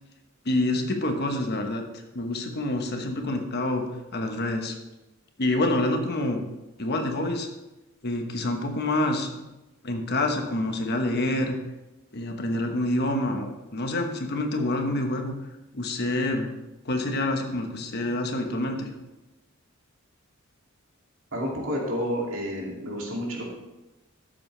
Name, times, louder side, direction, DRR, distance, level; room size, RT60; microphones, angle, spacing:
voice 1, 0.4-1.8 2.1-3.9 4.1-4.7 5.4-6.4 6.8-7.5 8.0-9.5 9.8-11.6 12.1-15.4 15.7-16.5 16.8-18.9, left 1 dB, 50° left, 4 dB, 1.2 m, -27 dB
voice 2, 21.3-23.5, equal, 70° right, -2 dB, 2.5 m, -30 dB
13.0 x 7.4 x 3.3 m, 1.0 s
head